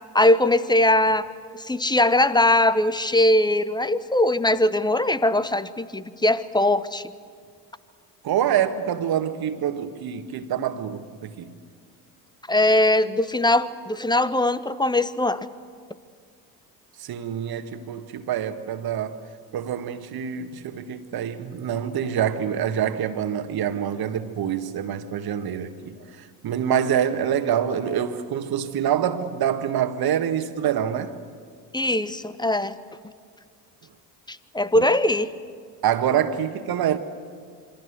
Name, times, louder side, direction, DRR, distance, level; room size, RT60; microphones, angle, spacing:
voice 1, 0.1-7.0 12.5-15.5 31.7-32.7 34.3-35.3, left 1 dB, 10° left, 1.0 m, -21 dB
voice 2, 8.2-11.6 17.0-19.2 19.5-31.2 34.7-34.9 35.8-37.0, right 9 dB, 50° right, 1.8 m, -26 dB
26.5 x 24.5 x 8.1 m
figure-of-eight pair, 50°, 48 cm